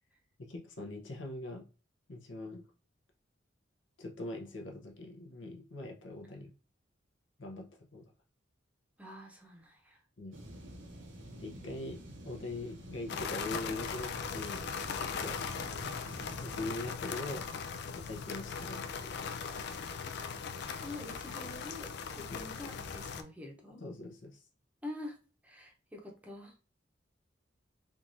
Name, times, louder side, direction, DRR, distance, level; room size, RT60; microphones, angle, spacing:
voice 1, 0.4-1.6 2.1-2.6 4.0-6.5 7.4-8.1 10.2-10.4 11.4-15.4 16.4-17.5 17.9-19.3 22.3-22.4 23.8-24.4, left 2 dB, 80° left, 2 dB, 0.8 m, -42 dB
voice 2, 9.0-10.0 15.5-15.6 20.2-23.8 24.8-25.2 25.4-26.6, left 2 dB, 10° right, 0 dB, 0.8 m, -47 dB
sound 1, 10.3-16.6, equal, 85° right, 0.9 m, -48 dB
sound 2, 13.1-23.2, left 6 dB, 60° left, 0.4 m, -39 dB
3.5 x 3.0 x 2.6 m, 0.34 s
head